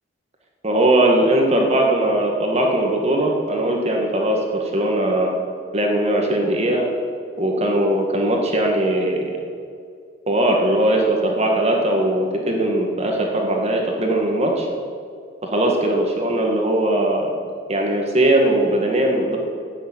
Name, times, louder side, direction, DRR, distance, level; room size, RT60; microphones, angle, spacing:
voice 1, 0.6-5.4 5.7-6.9 7.4-9.2 10.3-14.7 15.4-17.3 17.7-19.4, right 1 dB, 35° right, 1 dB, 1.9 m, -19 dB
13.5 x 7.3 x 9.2 m, 2.2 s
head